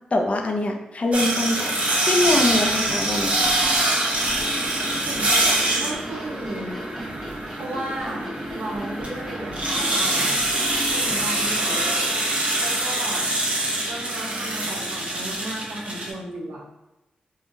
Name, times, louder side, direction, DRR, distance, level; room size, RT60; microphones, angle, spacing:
voice 1, 0.1-1.7 2.0-3.6, left 2 dB, 50° left, 3 dB, 0.5 m, -23 dB
sound 1, 1.1-16.1, right 1 dB, 45° right, 0.8 m, -24 dB
sound 2, 2.2-12.1, equal, ahead, 1.1 m, -37 dB
voice 2, 5.0-6.8 7.5-10.3 10.9-11.8 12.6-13.2 13.8-16.6, right 1 dB, 85° right, -2 dB, 0.6 m, -34 dB
3.7 x 2.3 x 2.6 m, 0.96 s
cardioid pair, 50°, 3 cm